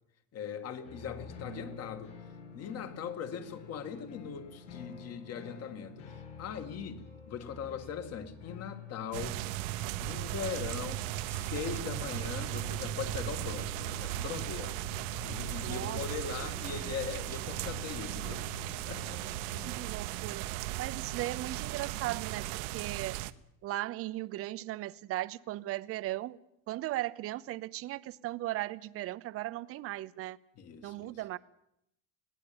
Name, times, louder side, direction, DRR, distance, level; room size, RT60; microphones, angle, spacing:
voice 1, 0.3-2.1 2.5-9.4 10.0-14.8 15.2-18.5 18.9-19.2 30.6-31.2, left 7 dB, 40° left, 2.3 m, -40 dB
sound 1, 0.8-19.8, left 7 dB, 80° left, 7.9 m, -49 dB
voice 2, 1.5-1.8 15.6-16.0 19.6-20.5 20.8-23.1 23.6-26.4 26.7-30.4 30.8-31.4, right 16 dB, 40° right, 0.7 m, -37 dB
sound 2, 9.1-23.3, right 15 dB, 70° right, 1.1 m, -37 dB
21.0 x 16.5 x 8.8 m
cardioid pair, 150°, 38 cm